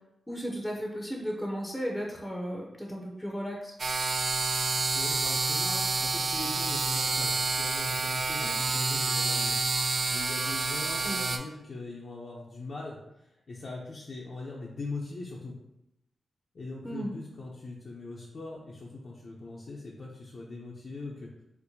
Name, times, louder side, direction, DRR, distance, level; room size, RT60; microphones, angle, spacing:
voice 1, 0.3-3.8 8.4-8.5 11.0-11.2 16.8-17.1, equal, 10° left, -1 dB, 0.6 m, -35 dB
sound 1, 3.8-11.4, right 3 dB, 55° right, 0.3 m, -28 dB
voice 2, 4.9-9.6 10.1-15.6 16.5-21.3, left 3 dB, 60° left, -4 dB, 0.5 m, -40 dB
4.3 x 2.1 x 2.7 m, 0.86 s
cardioid pair, 65°, 0 cm